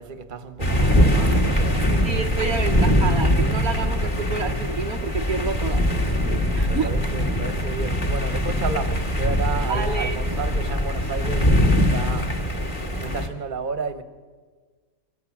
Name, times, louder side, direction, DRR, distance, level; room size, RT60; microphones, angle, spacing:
voice 1, 0.0-2.2 6.6-12.7 13.0-14.0, right 5 dB, 30° right, 1.4 m, -32 dB
sound 1, 0.6-13.3, equal, 25° left, 2.3 m, -22 dB
voice 2, 2.0-5.8 6.5-6.9 9.6-10.2, right 5 dB, 60° right, 1.3 m, -28 dB
27.0 x 25.5 x 7.5 m
omnidirectional pair, 1.9 m